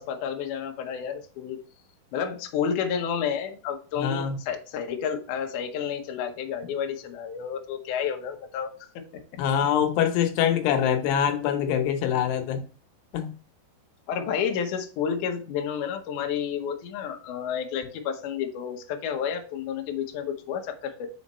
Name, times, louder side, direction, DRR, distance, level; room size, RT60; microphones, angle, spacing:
voice 1, 0.0-1.6 2.1-9.0 14.1-21.1, left 7 dB, 70° left, 4 dB, 1.9 m, -30 dB
voice 2, 4.0-4.4 9.4-12.6 13.1-13.3, left 9 dB, 90° left, 6 dB, 3.0 m, -24 dB
5.0 x 5.0 x 4.1 m, 0.39 s
omnidirectional pair, 4.6 m